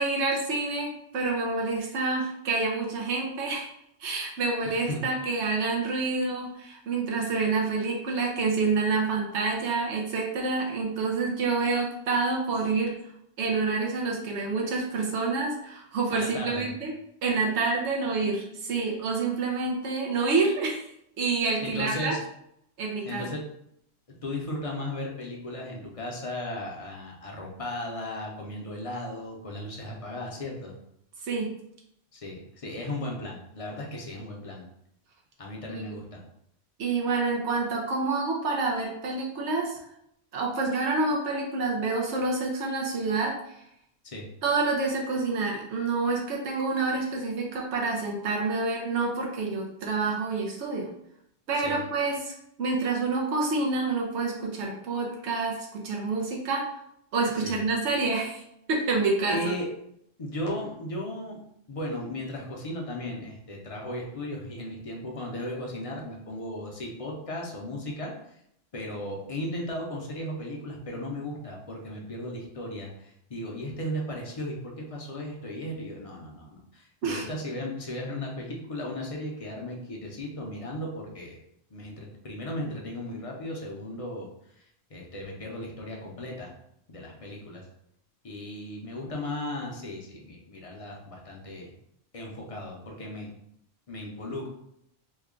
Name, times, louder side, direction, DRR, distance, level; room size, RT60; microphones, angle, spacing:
voice 1, 0.0-3.7 4.0-13.0 13.4-16.9 17.2-20.8 21.2-22.1 22.8-23.3 31.2-31.6 35.7-35.9 36.8-39.8 40.3-43.6 44.4-50.9 51.5-52.3 52.6-56.7 57.1-58.4 58.7-59.5 77.0-77.3, right 3 dB, 85° right, -1 dB, 0.9 m, -28 dB
voice 2, 16.1-16.7 21.6-22.2 23.1-23.4 24.2-30.7 32.1-34.6 35.4-36.2 44.0-44.3 51.5-51.8 57.4-57.6 59.3-59.7 60.2-61.4 61.7-68.1 68.7-81.4 81.7-84.3 84.6-84.7 84.9-86.5 86.9-87.6 88.2-91.7 92.1-93.3 93.9-94.5, left 1 dB, 40° left, -1 dB, 0.6 m, -36 dB
3.1 x 2.2 x 3.6 m, 0.75 s
omnidirectional pair, 1.1 m